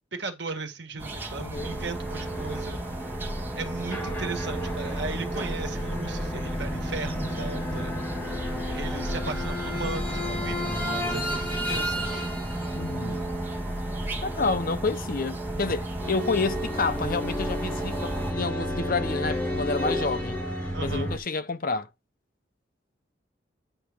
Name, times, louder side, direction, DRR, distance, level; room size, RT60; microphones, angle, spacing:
voice 1, 0.1-2.8 3.6-8.0 8.7-12.3 20.7-21.1, right 3 dB, 65° right, 1.6 m, -36 dB
sound 1, 1.0-18.3, right 1 dB, 10° right, 1.6 m, -37 dB
voice 2, 1.4-1.8 12.7-13.3 14.2-20.4 20.8-21.9, left 3 dB, 50° left, 0.7 m, -29 dB
sound 2, 1.5-21.2, equal, 10° left, 1.8 m, -32 dB
9.0 x 5.7 x 3.6 m
head